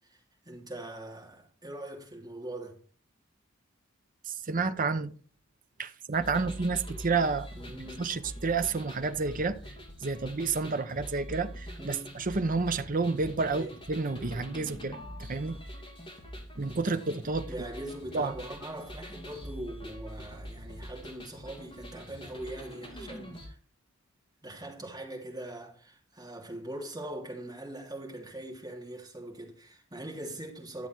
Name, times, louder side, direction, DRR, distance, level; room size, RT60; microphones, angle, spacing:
voice 1, 0.0-2.8 7.5-8.1 11.8-12.1 13.5-13.8 17.5-23.6 24.4-30.9, right 1 dB, 20° right, 3.1 m, -42 dB
voice 2, 4.3-5.1 5.8-7.5 8.0-9.6 10.0-15.6 16.6-17.5 18.1-18.3, right 4 dB, 45° right, 0.8 m, -30 dB
sound 1, 6.1-23.5, equal, 25° left, 2.8 m, -44 dB
12.5 x 7.2 x 4.6 m
head